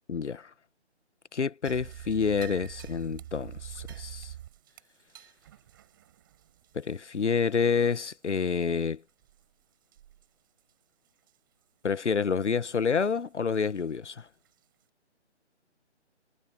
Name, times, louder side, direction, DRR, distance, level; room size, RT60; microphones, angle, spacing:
voice 1, 0.1-0.5 1.3-4.3 6.7-9.0 11.8-14.3, left 5 dB, 75° left, 1.2 m, -28 dB
sound 1, 1.6-8.2 8.6-8.7 9.2-9.4 9.9-10.3 10.6-10.7 11.3-11.4 13.7-13.8 14.4-14.5, right 12 dB, 20° right, 5.5 m, -46 dB
figure-of-eight pair, 170°, 35 cm